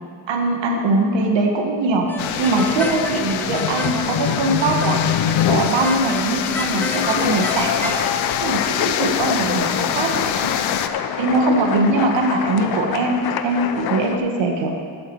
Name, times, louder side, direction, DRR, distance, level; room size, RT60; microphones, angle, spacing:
voice 1, 0.3-2.1 2.4-5.0 5.4-8.0 8.4-10.5 11.2-14.7, right 2 dB, 75° right, 2 dB, 1.5 m, -21 dB
sound 1, 2.1-8.0, left 1 dB, 5° left, 0.5 m, -33 dB
sound 2, 2.2-10.9, left 9 dB, 90° left, 0.7 m, -26 dB
sound 3, 3.5-14.2, left 9 dB, 55° left, 0.7 m, -25 dB
12.0 x 8.4 x 4.5 m, 2.2 s
cardioid pair, 115°, 46 cm